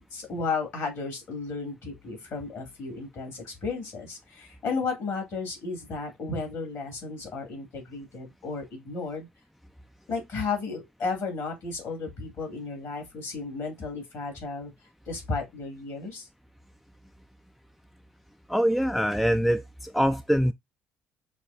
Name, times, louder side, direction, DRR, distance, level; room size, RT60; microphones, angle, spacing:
voice 1, 0.0-9.3 10.1-14.7 15.1-16.3, left 4 dB, 50° left, 2.1 m, -33 dB
voice 2, 18.5-20.5, equal, ahead, 0.3 m, -24 dB
5.9 x 2.3 x 2.4 m
figure-of-eight pair, 55°, 6 cm